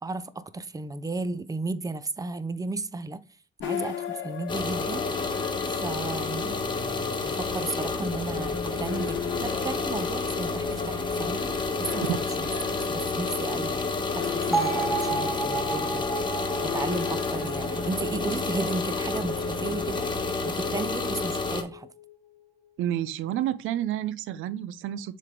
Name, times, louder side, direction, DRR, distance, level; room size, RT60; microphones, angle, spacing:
voice 1, 0.0-3.2 3.6-5.1 5.7-6.6 7.2-11.5 11.8-12.1 12.4-12.5 12.9-16.2 16.6-20.1 20.4-21.9, right 3 dB, 15° right, 0.6 m, -34 dB
sound 1, 3.6-22.7, left 10 dB, 75° left, 1.0 m, -39 dB
sound 2, 4.5-21.6, left 3 dB, 25° left, 1.3 m, -30 dB
Bell, 14.5-18.6, right 4 dB, ahead, 2.0 m, -32 dB
voice 2, 22.8-25.2, right 12 dB, 90° right, 0.5 m, -29 dB
7.4 x 3.4 x 3.7 m
cardioid pair, 90°, 20 cm